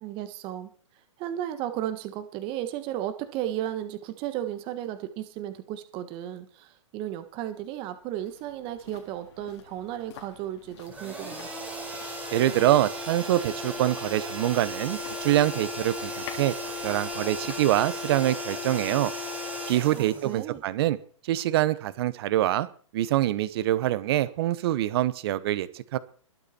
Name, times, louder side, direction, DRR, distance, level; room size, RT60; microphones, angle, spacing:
voice 1, 0.0-0.7 1.2-11.5 19.9-20.6, right 12 dB, 30° right, 10 dB, 1.5 m, -34 dB
sound 1, 7.1-20.2 20.5-20.6, left 8 dB, 55° left, 4.3 m, -50 dB
sound 2, 10.9-20.8, left 1 dB, 10° right, 5.1 m, -35 dB
voice 2, 12.3-16.1 16.4-19.1 19.7-21.0 21.2-22.7 22.9-26.0, right 14 dB, 50° right, 16 dB, 1.1 m, -25 dB
21.5 x 8.6 x 4.5 m, 0.44 s
hypercardioid pair, 140°, 17 cm